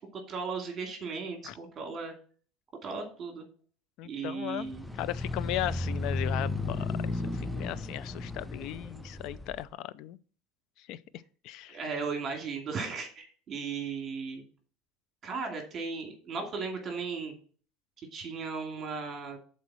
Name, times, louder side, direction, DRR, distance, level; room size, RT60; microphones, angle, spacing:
voice 1, 0.1-2.1 2.8-3.5 4.0-4.9 11.7-14.4 15.2-17.3 18.1-19.4, right 5 dB, 35° right, 2.4 m, -36 dB
voice 2, 4.0-4.7 5.0-10.2 10.9-11.0 11.4-11.8, left 14 dB, 60° left, 0.5 m, -37 dB
sound 1, 4.6-9.6, left 2 dB, 5° left, 0.5 m, -34 dB
7.5 x 4.2 x 6.1 m
supercardioid pair, 130°, 0 cm